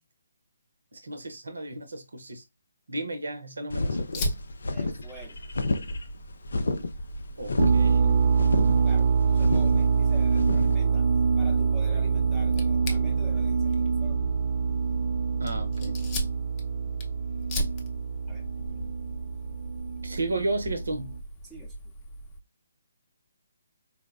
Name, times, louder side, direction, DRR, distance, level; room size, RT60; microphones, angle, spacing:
voice 1, 0.9-2.4 2.9-4.3 7.4-8.2 15.4-16.0 20.0-21.1, right 2 dB, 70° right, 0.7 m, -33 dB
sound 1, 3.7-10.8, left 2 dB, 65° left, 0.4 m, -31 dB
Fire, 4.1-22.4, equal, 25° left, 0.6 m, -38 dB
voice 2, 4.7-5.4 8.8-11.1 11.4-14.2 18.3-19.0 21.4-21.7, right 2 dB, 10° right, 0.7 m, -47 dB
sound 2, 7.6-21.2, right 5 dB, 45° right, 0.4 m, -25 dB
4.0 x 2.1 x 2.4 m
figure-of-eight pair, 140°, 0 cm